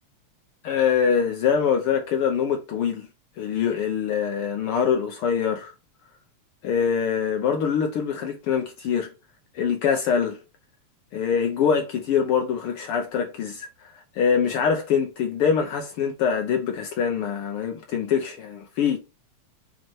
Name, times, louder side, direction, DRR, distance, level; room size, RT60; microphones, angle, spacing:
voice 1, 0.6-3.1 3.4-5.7 6.6-9.1 9.5-10.4 11.1-13.7 14.1-19.0, left 7 dB, 85° left, 1.2 m, -24 dB
7.8 x 3.1 x 4.4 m
omnidirectional pair, 3.5 m